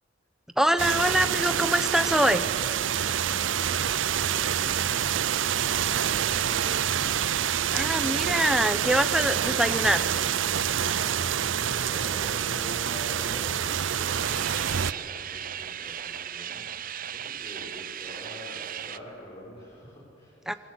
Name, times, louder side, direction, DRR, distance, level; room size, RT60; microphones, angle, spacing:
voice 1, 0.6-2.5 7.7-10.0 20.5-20.6, right 1 dB, ahead, 10 dB, 0.9 m, -24 dB
sound 1, 0.8-14.9, right 9 dB, 90° right, 0.6 m, -27 dB
voice 2, 3.1-7.2 10.8-20.6, equal, 35° left, -5 dB, 6.1 m, -45 dB
sound 2, 12.2-19.0, right 9 dB, 50° right, 0.7 m, -38 dB
27.0 x 24.0 x 8.5 m, 2.8 s
head